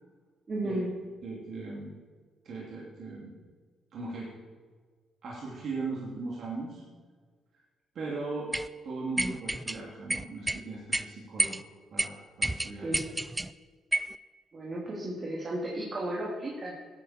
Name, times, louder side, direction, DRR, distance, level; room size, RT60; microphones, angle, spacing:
voice 1, 0.5-0.9 12.8-13.0 14.5-16.7, right 1 dB, 40° right, -4 dB, 2.7 m, -34 dB
voice 2, 1.2-2.0 2.4-3.4 3.9-4.3 5.2-6.8 7.9-8.5 8.8-11.6 11.9-13.1, right 3 dB, 60° right, -5 dB, 2.8 m, -38 dB
sound 1, 8.5-8.7 9.2-9.8 10.1-10.6 10.9-11.0 11.4-11.6 12.0-12.1 12.4-13.5 13.9-14.1, right 1 dB, 10° right, 0.4 m, -29 dB
15.5 x 10.0 x 4.5 m, 1.5 s
cardioid pair, 90°, 0 cm